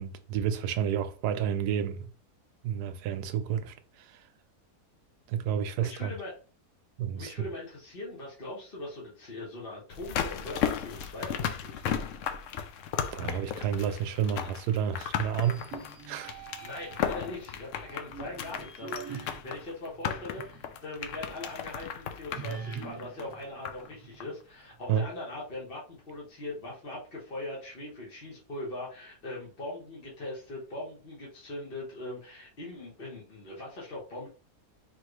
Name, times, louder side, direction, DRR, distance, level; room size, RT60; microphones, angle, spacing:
voice 1, 0.0-2.1 2.6-4.2 5.3-6.1 7.0-7.3 13.1-15.7 16.1-16.4 24.9-25.0, right 8 dB, 90° right, 1.1 m, -30 dB
voice 2, 5.8-6.4 7.2-11.8 16.6-34.3, left 2 dB, 40° left, 1.4 m, -41 dB
sound 1, 9.9-23.9 24.2-24.3, left 8 dB, 65° left, 0.8 m, -35 dB
sound 2, 15.3-17.2 17.8-20.8 21.1-21.2 22.3-24.4, right 6 dB, 45° right, 1.1 m, -44 dB
4.2 x 3.2 x 3.1 m
omnidirectional pair, 1.7 m